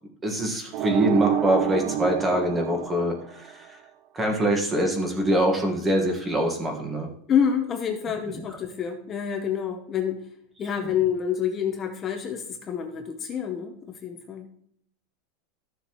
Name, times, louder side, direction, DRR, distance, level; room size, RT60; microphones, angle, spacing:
voice 1, 0.2-3.7 4.1-7.1 8.3-8.4, right 1 dB, 15° right, 3 dB, 1.5 m, -24 dB
sound 1, 0.7-3.7, right 11 dB, 35° right, 0.4 m, -28 dB
voice 2, 7.3-10.3 10.6-14.5, left 8 dB, 25° left, 3 dB, 0.8 m, -27 dB
13.5 x 6.9 x 3.0 m, 0.68 s
supercardioid pair, 155°, 0 cm